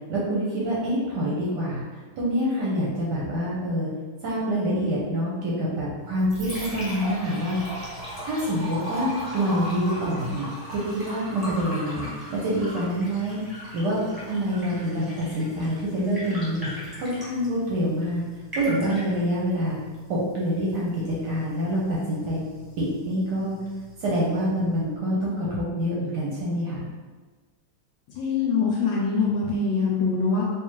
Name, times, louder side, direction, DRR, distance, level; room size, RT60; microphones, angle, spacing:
voice 1, 0.1-1.8 2.2-3.9 4.2-7.6 8.2-13.4 13.7-14.0 14.3-16.7 17.0-18.2 18.5-19.8 20.1-22.4 22.8-23.5 24.0-26.9, equal, 65° right, -6 dB, 1.1 m, -26 dB
Liquid, 6.0-25.0, equal, 15° right, 0.9 m, -39 dB
voice 2, 28.1-30.4, left 4 dB, 75° left, -3 dB, 1.2 m, -23 dB
3.5 x 2.6 x 3.0 m, 1.3 s
omnidirectional pair, 2.4 m